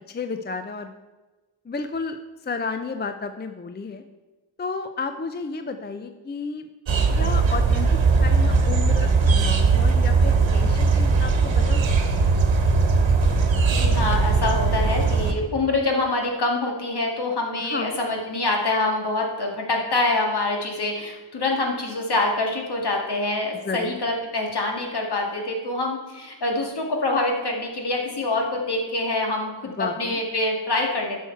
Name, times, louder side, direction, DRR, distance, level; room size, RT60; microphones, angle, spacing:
voice 1, 0.1-0.9 1.7-4.0 4.6-6.7 7.2-7.9 8.2-11.8 12.1-12.3 17.6-18.0 23.6-24.0 29.8-30.2, left 4 dB, 25° left, 8 dB, 0.5 m, -32 dB
sound 1, 6.9-15.3, right 4 dB, 85° right, 1.2 m, -19 dB
voice 2, 13.8-31.2, left 2 dB, 60° left, 1 dB, 2.0 m, -25 dB
11.0 x 6.4 x 4.5 m, 1.2 s
wide cardioid pair, 100°, 45 cm